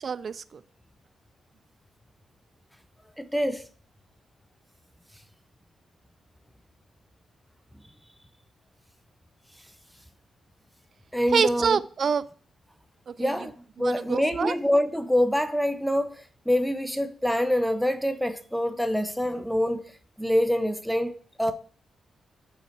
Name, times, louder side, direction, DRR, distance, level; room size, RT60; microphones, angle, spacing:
voice 1, 0.0-0.6 11.3-12.2 13.1-13.3 13.8-14.5, right 6 dB, 55° right, 0.4 m, -26 dB
voice 2, 3.2-3.7 11.1-11.8 13.2-13.5 13.8-19.9 20.2-21.5, equal, ahead, 0.7 m, -25 dB
5.7 x 4.0 x 4.5 m
cardioid pair, 85°, 0 cm